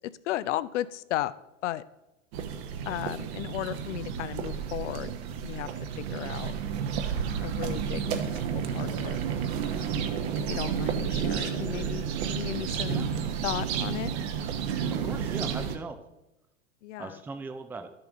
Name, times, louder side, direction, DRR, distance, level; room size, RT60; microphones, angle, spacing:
voice 1, 0.2-1.3 1.6-1.8 2.8-5.1 5.4-5.7 6.0-6.6 7.4-9.2 9.6-9.8 10.5-13.1 13.4-14.1 14.8-14.9 16.8-17.2, left 14 dB, 60° left, 17 dB, 0.6 m, -35 dB
sound 1, 2.3-15.8, right 7 dB, 55° right, 1.2 m, -31 dB
voice 2, 15.0-16.0 17.0-17.9, right 3 dB, 5° right, 8 dB, 0.5 m, -39 dB
12.5 x 7.0 x 3.7 m, 0.94 s
hypercardioid pair, 95°, 40 cm